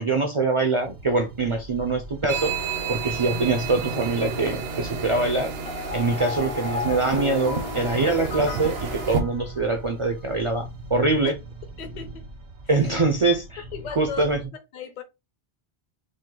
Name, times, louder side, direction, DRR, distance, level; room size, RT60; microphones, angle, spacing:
voice 1, 0.0-2.5 2.9-5.5 5.9-11.4 12.7-13.6 14.0-14.4, right 3 dB, 45° right, 0.4 m, -24 dB
Viral London Nights, 0.8-14.5, right 2 dB, 90° right, 1.1 m, -41 dB
sound 1, 2.3-9.2, right 5 dB, 70° right, 0.9 m, -31 dB
sound 2, 5.7-10.0, left 4 dB, 70° left, 1.0 m, -34 dB
voice 2, 11.8-12.2 12.8-13.1 13.7-14.3 14.7-15.0, left 6 dB, 50° left, 0.7 m, -36 dB
5.1 x 2.1 x 3.8 m
omnidirectional pair, 1.1 m